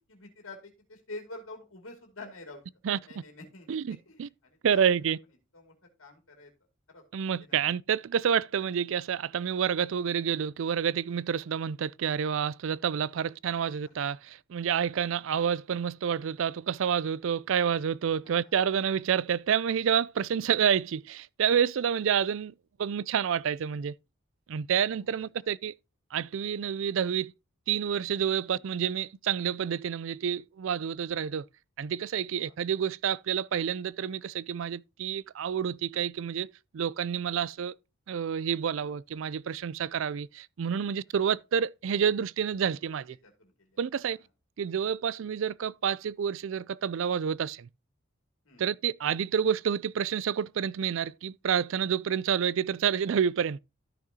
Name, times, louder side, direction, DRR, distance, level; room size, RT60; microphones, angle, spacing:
voice 1, 0.1-2.6 3.0-5.1 5.5-6.5 6.9-7.7 13.5-14.0 18.2-18.6 22.0-22.2 25.0-25.2 28.4-28.6 32.3-32.5 40.7-40.8 43.2-43.8 44.1-44.3 48.4-48.8, left 2 dB, 80° left, 2.4 m, -48 dB
voice 2, 3.7-4.3 4.6-5.2 7.1-22.5 22.8-23.9 24.5-25.7 26.1-27.3 27.7-31.4 31.8-37.7 38.1-43.2 43.8-44.2 44.6-47.7 48.6-53.6, right 8 dB, 70° right, 0.4 m, -29 dB
13.5 x 6.0 x 2.8 m
head